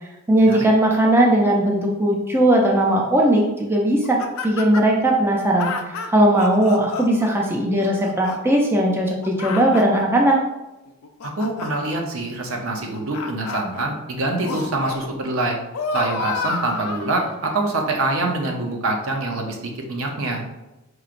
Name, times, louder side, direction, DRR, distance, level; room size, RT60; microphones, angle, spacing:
voice 1, 0.3-4.2 4.4-5.7 6.1-10.4, right 1 dB, 10° right, -1 dB, 0.4 m, -18 dB
sound 1, 4.0-5.0 5.6-7.3 7.8-8.4 8.9-10.2 10.9-11.9 12.8-13.8 14.4-15.0 15.4-17.5 18.1-18.2, left 4 dB, 80° left, 0.4 m, -30 dB
voice 2, 11.2-15.6 15.9-20.4, right 2 dB, 70° right, 2 dB, 0.7 m, -25 dB
4.8 x 3.1 x 2.5 m, 1.0 s
head